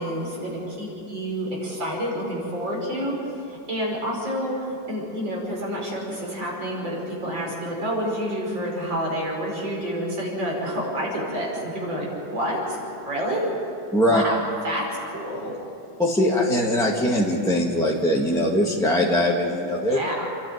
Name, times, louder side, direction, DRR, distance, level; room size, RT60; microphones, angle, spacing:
voice 1, 0.0-12.8 13.0-13.5 14.1-14.4 14.6-15.5 19.9-20.3, equal, 75° right, -2 dB, 6.0 m, -28 dB
voice 2, 13.9-14.2 16.0-20.0, left 1 dB, ahead, -4 dB, 1.6 m, -21 dB
29.0 x 11.5 x 9.3 m, 2.9 s
omnidirectional pair, 2.1 m